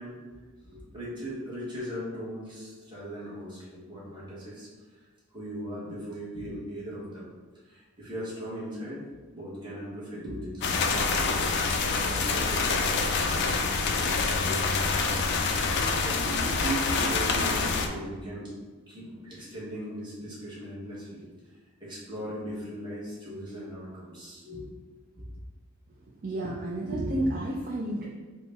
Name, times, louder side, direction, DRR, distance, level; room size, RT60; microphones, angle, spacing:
voice 1, 0.0-5.0 5.3-7.3 7.6-9.1 9.3-15.1 16.0-18.5 18.9-21.5 21.8-24.6 25.1-25.2, equal, 20° right, -7 dB, 1.2 m, -38 dB
sound 1, 10.6-17.9, left 4 dB, 55° left, 0.3 m, -26 dB
voice 2, 26.2-28.1, right 1 dB, 40° right, -3 dB, 0.4 m, -30 dB
4.3 x 2.1 x 3.4 m, 1.4 s
head